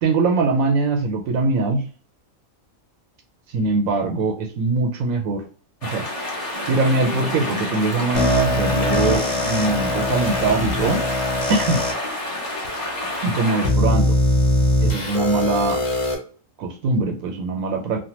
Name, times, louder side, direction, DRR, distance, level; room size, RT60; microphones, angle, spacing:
voice 1, 0.0-1.8 3.5-5.4 5.8-6.0 6.7-11.0 11.5-11.8 13.2-14.1 14.8-15.8 16.6-18.0, right 3 dB, 85° right, 4 dB, 1.0 m, -22 dB
sound 1, 5.8-13.7, left 1 dB, 30° left, 0.9 m, -29 dB
sound 2, 6.5-11.6, right 1 dB, 50° right, 0.8 m, -36 dB
sound 3, 8.1-11.9 12.6-12.7 13.6-16.1, left 1 dB, 70° left, 1.2 m, -21 dB
3.3 x 2.1 x 2.8 m, 0.41 s
omnidirectional pair, 1.4 m